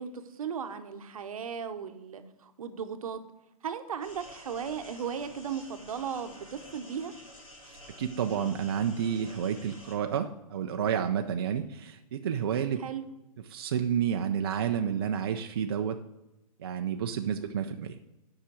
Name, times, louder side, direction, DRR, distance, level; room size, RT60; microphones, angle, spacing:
voice 1, 0.0-3.2 3.6-7.1 12.8-13.1 17.4-17.5, right 7 dB, 70° right, 9 dB, 1.0 m, -36 dB
sound 1, 4.0-10.0, left 1 dB, 60° left, 3.3 m, -50 dB
voice 2, 7.7-12.8 13.5-16.0 16.6-18.0, right 8 dB, 40° right, 5 dB, 0.4 m, -30 dB
8.7 x 5.7 x 6.1 m, 0.99 s
hypercardioid pair, 170°, 19 cm